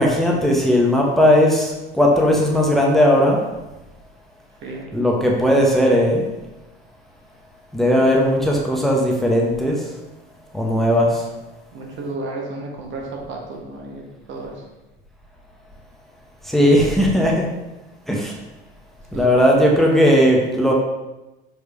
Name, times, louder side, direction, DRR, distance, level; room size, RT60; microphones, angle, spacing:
voice 1, 0.0-3.4 4.9-6.2 7.7-9.8 10.5-11.3 16.4-17.5 18.1-18.4 19.1-20.7, equal, ahead, -2 dB, 1.2 m, -17 dB
voice 2, 11.7-14.6 19.1-19.3, right 2 dB, 40° right, 0 dB, 1.5 m, -33 dB
6.4 x 5.0 x 3.4 m, 1.0 s
figure-of-eight pair, 65°, 29 cm